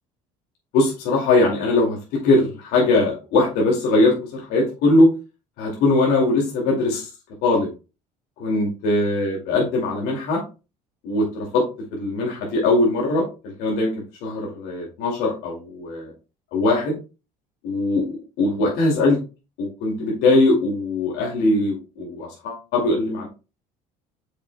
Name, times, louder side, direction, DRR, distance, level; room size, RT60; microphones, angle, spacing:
voice 1, 0.7-5.1 5.6-7.1 7.4-7.7 8.4-10.4 11.0-11.6 11.9-16.1 16.5-17.0 17.6-19.2 19.6-23.3, left 2 dB, 75° left, -2 dB, 2.4 m, -21 dB
7.8 x 6.5 x 2.2 m, 0.30 s
cardioid pair, 145°, 16 cm